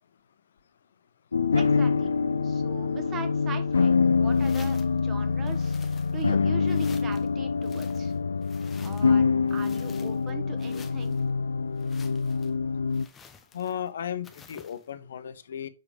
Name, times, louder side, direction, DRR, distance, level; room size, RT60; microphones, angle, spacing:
sound 1, 1.3-13.1, left 5 dB, 80° left, 0.4 m, -25 dB
voice 1, 1.5-2.1 2.4-5.8 6.1-8.1 8.8-11.2, right 6 dB, 20° right, 1.5 m, -41 dB
sound 2, 4.3-5.0 5.5-6.3 6.7-7.3 7.6-9.2 9.5-10.3 10.6-11.2 11.8-12.5 12.9-13.9 14.2-14.8, left 6 dB, 15° left, 1.0 m, -51 dB
voice 2, 13.5-15.7, left 9 dB, 65° left, 0.8 m, -35 dB
6.4 x 5.0 x 5.0 m
figure-of-eight pair, 120°, 0 cm